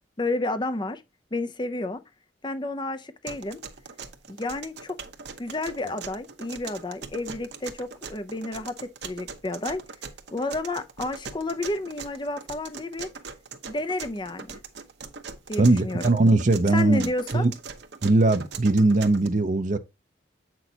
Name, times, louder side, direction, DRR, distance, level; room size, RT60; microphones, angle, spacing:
voice 1, 0.2-1.0 1.3-2.0 2.4-3.6 4.3-5.0 5.4-9.8 10.3-13.1 13.6-14.6 15.5-16.1 16.7-17.5, left 2 dB, 25° left, 0.6 m, -31 dB
sound 1, 3.3-19.3, right 5 dB, 60° right, 1.0 m, -41 dB
voice 2, 15.6-17.5 18.0-19.8, right 2 dB, 40° right, 0.6 m, -20 dB
7.8 x 6.1 x 2.8 m
head